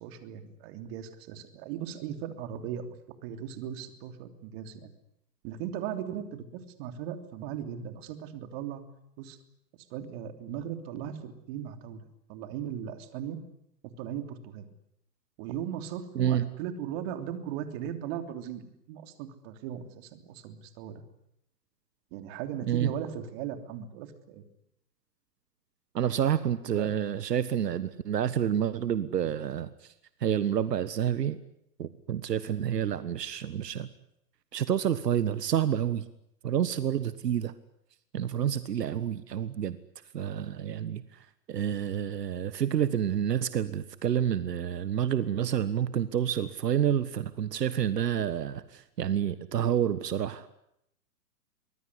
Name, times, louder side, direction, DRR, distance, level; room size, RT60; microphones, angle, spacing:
voice 1, 0.0-2.9 3.2-4.9 5.4-8.8 9.2-9.4 9.9-12.0 12.3-13.4 14.0-14.7 15.4-21.0 22.1-24.4 26.7-26.9, right 9 dB, 35° right, 8 dB, 3.2 m, -38 dB
voice 2, 25.9-29.9 30.2-31.4 31.8-33.9 34.5-36.0 36.4-37.5 38.1-39.8 40.1-41.0 41.5-50.5, right 9 dB, 80° right, 14 dB, 1.5 m, -28 dB
24.0 x 21.0 x 9.8 m, 0.79 s
hypercardioid pair, 140°, 49 cm